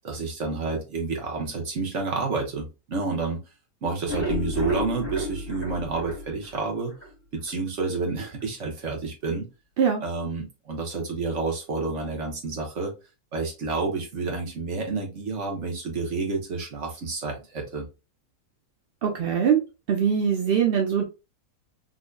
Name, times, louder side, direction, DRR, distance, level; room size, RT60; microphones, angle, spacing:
voice 1, 0.0-3.4 3.8-6.9 7.3-9.5 10.0-12.9 13.3-17.9, right 3 dB, 50° right, 1 dB, 1.4 m, -29 dB
sound 1, 3.9-7.1 7.5-7.6 7.9-8.0 8.4-8.5, left 1 dB, 25° left, 1.9 m, -32 dB
voice 2, 19.0-19.6 19.9-21.0, right 7 dB, 65° right, 2 dB, 0.5 m, -22 dB
3.9 x 3.0 x 2.2 m, 0.27 s
omnidirectional pair, 1.7 m